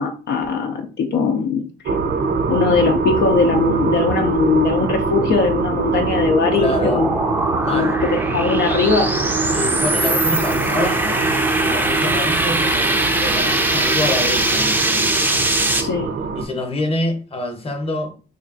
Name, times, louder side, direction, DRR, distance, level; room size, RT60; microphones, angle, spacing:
voice 1, 0.0-1.7 2.5-7.1 7.7-9.2 15.7-16.1, left 4 dB, 60° left, 0.5 m, -20 dB
sound 1, 1.9-16.4, right 4 dB, 60° right, 0.7 m, -23 dB
sound 2, 5.7-15.8, right 2 dB, 10° right, 0.5 m, -22 dB
voice 2, 6.5-7.1 7.6-7.9 9.5-15.1 16.3-18.2, left 1 dB, 30° left, 0.9 m, -26 dB
3.3 x 2.3 x 3.8 m
cardioid pair, 90°, 20 cm